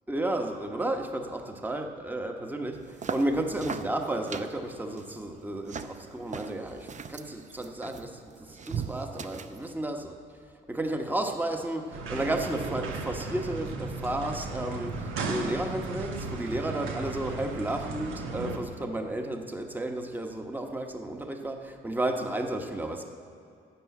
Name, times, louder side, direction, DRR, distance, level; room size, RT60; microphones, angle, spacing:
voice 1, 0.1-2.8 3.1-8.1 8.4-10.0 10.7-23.0, right 1 dB, 10° right, 3 dB, 1.1 m, -32 dB
sound 1, 2.7-9.7, right 6 dB, 40° right, 0.7 m, -40 dB
sound 2, 11.9-18.6, right 3 dB, 85° right, 1.4 m, -35 dB
12.5 x 6.9 x 8.3 m, 2.4 s
cardioid pair, 90°, 20 cm